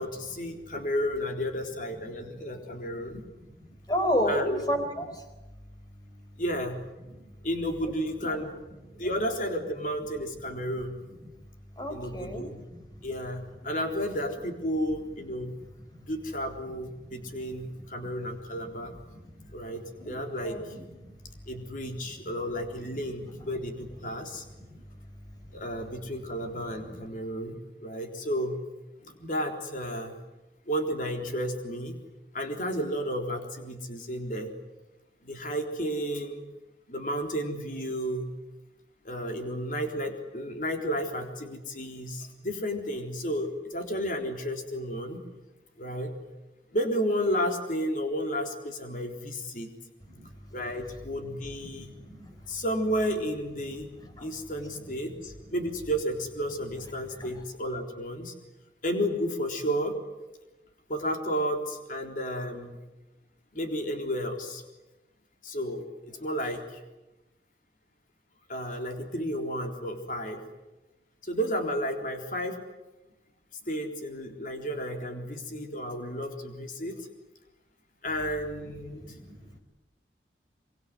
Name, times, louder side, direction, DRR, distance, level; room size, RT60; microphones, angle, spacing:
voice 1, 0.0-3.2 4.3-4.6 6.4-6.8 7.4-8.6 8.9-11.0 11.9-12.6 13.0-15.6 16.0-18.9 19.5-20.6 21.5-24.4 25.5-28.6 29.0-30.2 30.7-32.0 32.3-34.5 35.2-36.4 36.9-38.3 39.0-45.2 45.8-46.1 46.7-49.7 50.5-51.9 52.5-53.9 54.2-58.3 58.8-60.0 60.9-62.8 63.5-64.6 65.4-66.8 68.5-70.4 71.2-72.6 73.7-77.1 78.0-79.2, equal, 50° left, 4 dB, 3.8 m, -32 dB
voice 2, 3.6-4.4 4.7-5.2 7.2-7.3 7.8-7.9 8.2-8.4 11.8-12.8 17.2-17.4 18.0-18.1 19.1-19.5 20.0-21.1 24.2-24.3 24.6-24.8 26.9-27.0 50.1-50.3 51.7-52.3 54.2-54.3 57.2-57.4 78.9-79.5, equal, 20° left, 6 dB, 4.4 m, -33 dB
25.0 x 24.5 x 9.7 m, 1.1 s
head